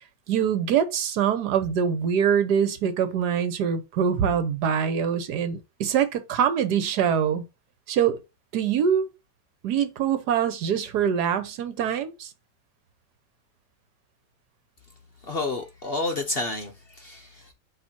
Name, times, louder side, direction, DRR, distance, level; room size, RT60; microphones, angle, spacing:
voice 1, 0.3-7.4 7.9-8.2 8.5-9.1 9.6-12.3, right 8 dB, 70° right, 1.4 m, -24 dB
voice 2, 15.2-17.5, left 2 dB, 50° left, 0.7 m, -30 dB
7.2 x 3.1 x 4.2 m
omnidirectional pair, 1.9 m